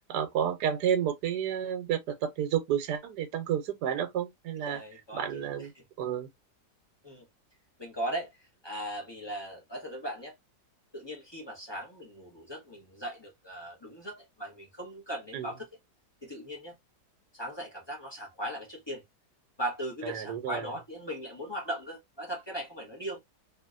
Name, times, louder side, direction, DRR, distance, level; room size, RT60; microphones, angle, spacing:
voice 1, 0.1-4.8 5.1-5.7 6.0-6.3 15.3-15.6 20.0-20.7, right 9 dB, 70° right, 1.2 m, -31 dB
voice 2, 4.6-5.7 7.0-7.3 7.8-10.3 10.9-15.7 16.2-16.8 17.3-19.0 19.6-23.2, right 1 dB, 20° left, 0.8 m, -38 dB
2.9 x 2.8 x 2.4 m
omnidirectional pair, 1.9 m